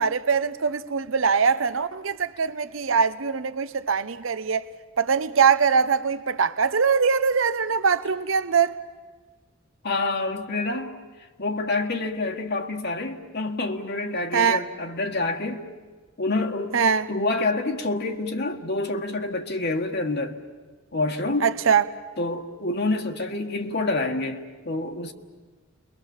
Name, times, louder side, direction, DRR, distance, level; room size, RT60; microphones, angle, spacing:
voice 1, 0.0-4.7 5.0-8.7 14.3-14.6 16.7-17.1 21.4-21.8, right 6 dB, 70° right, 0.8 m, -22 dB
voice 2, 9.8-11.0 11.4-15.6 16.2-16.8 17.1-20.4 20.9-21.5 22.2-25.1, left 2 dB, 55° left, 1.6 m, -27 dB
30.0 x 22.5 x 7.2 m
head